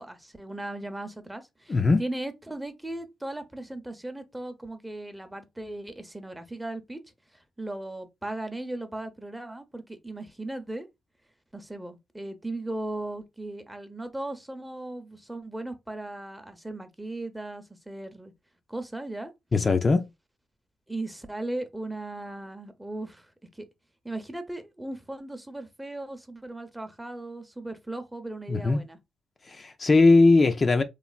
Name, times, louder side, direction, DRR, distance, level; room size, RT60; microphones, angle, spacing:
voice 1, 0.0-7.0 7.3-10.9 11.5-18.3 18.7-19.3 20.9-23.7 24.0-29.0, right 2 dB, 10° right, 0.6 m, -37 dB
voice 2, 1.7-2.0 19.5-20.1 28.5-28.8 29.5-30.8, left 3 dB, 35° left, 0.4 m, -20 dB
3.1 x 2.4 x 2.3 m
cardioid pair, 65°, 0 cm